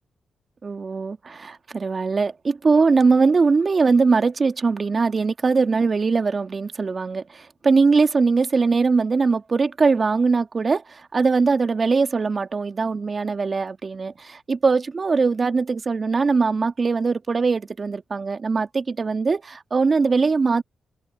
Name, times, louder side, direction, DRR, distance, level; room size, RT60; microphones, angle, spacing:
voice 1, 0.6-20.6, right 4 dB, 45° right, 1.9 m, -21 dB
supercardioid pair, 55°, 0 cm